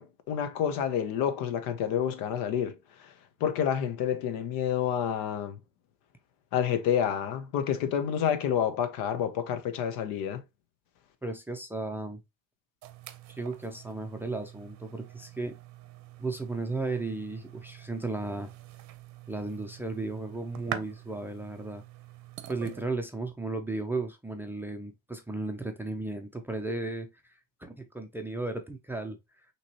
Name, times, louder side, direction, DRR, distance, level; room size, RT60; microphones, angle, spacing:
voice 1, 0.0-2.8 3.4-5.6 6.5-10.4, left 9 dB, 60° left, 0.9 m, -29 dB
voice 2, 11.2-12.2 13.3-15.6 16.2-18.5 19.3-21.8 22.5-27.1 27.6-29.2, right 2 dB, 5° right, 0.5 m, -35 dB
sound 1, 12.8-22.9, right 12 dB, 45° right, 0.7 m, -45 dB
5.7 x 3.1 x 2.9 m
supercardioid pair, 110°, 38 cm